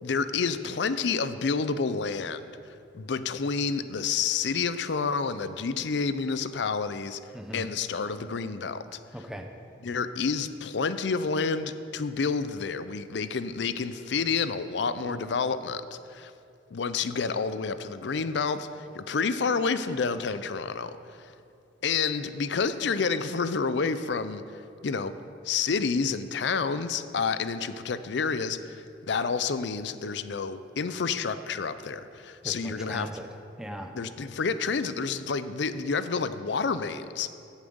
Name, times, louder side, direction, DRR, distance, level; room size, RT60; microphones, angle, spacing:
voice 1, 0.0-7.2 7.5-9.0 9.8-16.3 16.7-21.3 21.8-24.4 24.8-25.1 25.4-33.1 33.9-37.3, left 5 dB, 65° left, 12 dB, 0.5 m, -29 dB
voice 2, 7.3-7.7 9.1-9.5 32.4-33.3 33.6-33.9, equal, 5° right, 4 dB, 0.7 m, -39 dB
8.9 x 7.2 x 7.8 m, 2.5 s
head